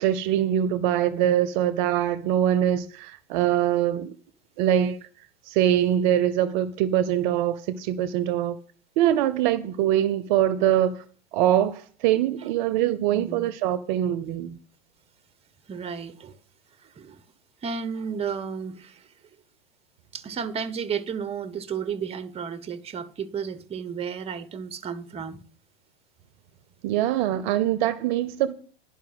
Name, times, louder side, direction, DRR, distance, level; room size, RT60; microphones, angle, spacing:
voice 1, 0.0-4.2 4.6-5.0 5.5-8.6 9.0-11.0 11.3-14.6 26.8-28.5, right 11 dB, 50° right, 0.8 m, -23 dB
voice 2, 13.1-13.5 15.7-16.4 16.8-17.2 17.6-19.1 20.1-25.4, right 6 dB, 20° right, 0.9 m, -33 dB
11.0 x 5.7 x 7.9 m
hypercardioid pair, 105°, 31 cm